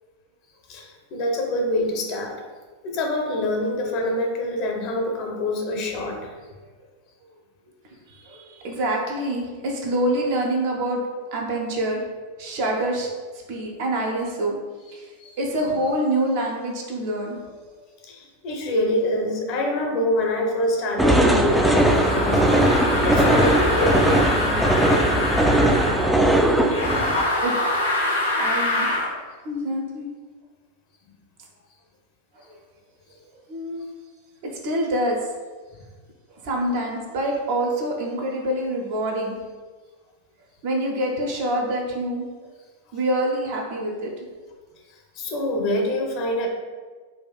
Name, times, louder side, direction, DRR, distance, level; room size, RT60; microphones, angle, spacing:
voice 1, 0.7-2.4 2.8-6.3 15.2-15.3 18.1-24.7 35.7-35.8 44.9-46.5, left 1 dB, 40° left, 2 dB, 0.6 m, -26 dB
voice 2, 8.1-11.0 11.3-13.1 13.5-14.6 14.9-15.1 15.4-17.6 27.4-27.5 28.0-28.9 29.4-30.1 32.3-32.6 33.5-33.9 34.6-35.2 36.4-39.3 40.6-42.5 42.9-44.1, right 1 dB, 50° right, 0 dB, 0.6 m, -26 dB
sound 1, 21.0-27.2, right 1 dB, ahead, 0.3 m, -19 dB
sound 2, 21.5-26.1 26.7-29.1, left 1 dB, 80° left, 0.7 m, -25 dB
4.1 x 2.3 x 2.3 m, 1.4 s
figure-of-eight pair, 90°, 0 cm